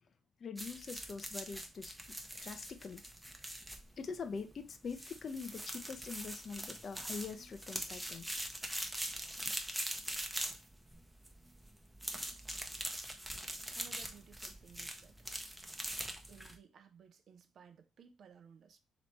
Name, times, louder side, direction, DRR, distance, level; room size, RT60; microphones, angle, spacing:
voice 1, 0.4-1.9 2.4-3.0 4.0-8.3 9.5-9.6, left 5 dB, 50° left, 0.6 m, -44 dB
sound 1, 0.6-16.6, right 1 dB, 5° right, 0.7 m, -43 dB
voice 2, 13.7-15.2 16.3-18.8, right 7 dB, 60° right, 0.6 m, -58 dB
3.2 x 3.0 x 4.1 m
cardioid pair, 90°, 0 cm